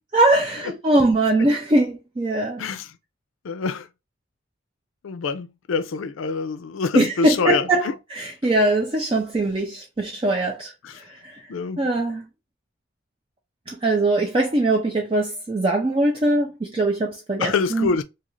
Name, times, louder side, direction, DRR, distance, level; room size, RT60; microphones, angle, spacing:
voice 1, 0.1-2.6 6.9-10.7 11.1-11.4 11.8-12.2 13.7-17.9, right 2 dB, 25° right, 0.4 m, -21 dB
voice 2, 3.4-3.9 5.0-7.9 10.8-11.0 11.5-11.8 17.4-18.0, left 4 dB, 80° left, 0.4 m, -25 dB
2.8 x 2.5 x 3.0 m
head